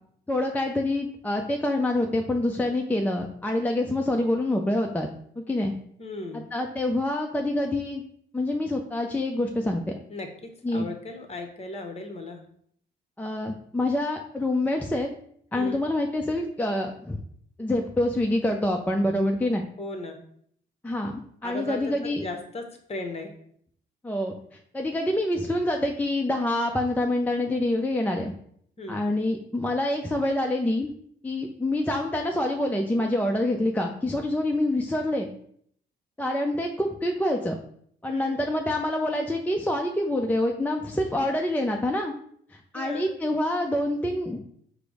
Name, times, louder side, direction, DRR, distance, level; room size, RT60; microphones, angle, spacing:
voice 1, 0.3-5.1 5.4-5.7 6.3-8.0 8.3-9.8 10.6-10.9 13.2-15.1 15.5-17.2 17.6-19.7 20.8-22.3 24.0-24.3 24.7-28.3 28.9-30.9 31.2-35.3 36.2-37.6 38.0-42.1 42.5-44.4, left 1 dB, 10° left, 2 dB, 0.4 m, -26 dB
voice 2, 6.0-6.5 10.1-10.3 10.7-12.4 15.5-15.8 19.8-20.2 21.4-23.4 28.8-29.0 38.1-38.4 42.7-43.1, left 2 dB, 30° left, 4 dB, 0.9 m, -36 dB
4.9 x 2.0 x 4.7 m, 0.64 s
cardioid pair, 90°, 20 cm